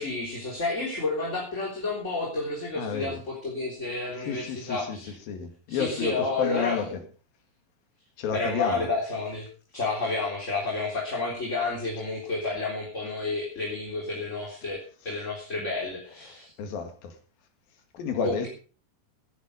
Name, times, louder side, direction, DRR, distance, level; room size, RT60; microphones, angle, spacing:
voice 1, 0.0-5.1 5.7-6.8 8.3-9.5 9.7-16.5 18.2-18.5, left 3 dB, 20° left, 3.7 m, -30 dB
voice 2, 2.8-3.2 4.3-7.0 8.2-8.9 16.3-17.2 17.9-18.5, left 6 dB, 85° left, 3.8 m, -31 dB
15.5 x 10.5 x 5.1 m
omnidirectional pair, 4.0 m